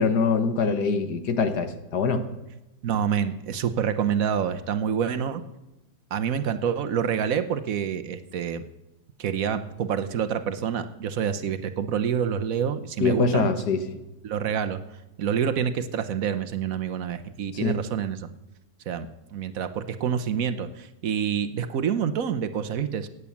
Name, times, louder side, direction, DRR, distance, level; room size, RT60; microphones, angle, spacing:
voice 1, 0.0-2.3 13.0-14.0 17.5-17.7, left 4 dB, 70° left, 9 dB, 1.7 m, -24 dB
voice 2, 2.8-5.4 6.1-8.6 9.2-13.5 14.2-14.8 15.2-18.3 18.9-23.1, right 8 dB, 60° right, 10 dB, 1.2 m, -27 dB
17.5 x 8.3 x 7.2 m, 1.0 s
omnidirectional pair, 1.8 m